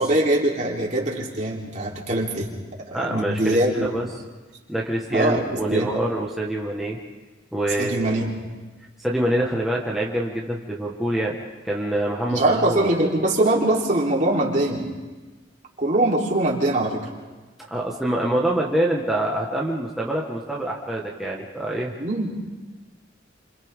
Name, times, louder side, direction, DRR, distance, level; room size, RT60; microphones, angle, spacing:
voice 1, 0.0-2.5 2.9-3.9 5.1-5.9 7.8-8.3 12.3-14.9 15.8-17.0 22.0-22.4, right 1 dB, 40° right, -3 dB, 3.7 m, -22 dB
voice 2, 2.9-4.0 4.7-7.0 7.5-8.1 9.0-11.4 11.6-13.1 17.7-21.9, right 1 dB, ahead, -4 dB, 1.6 m, -25 dB
29.5 x 27.0 x 3.8 m, 1.3 s
head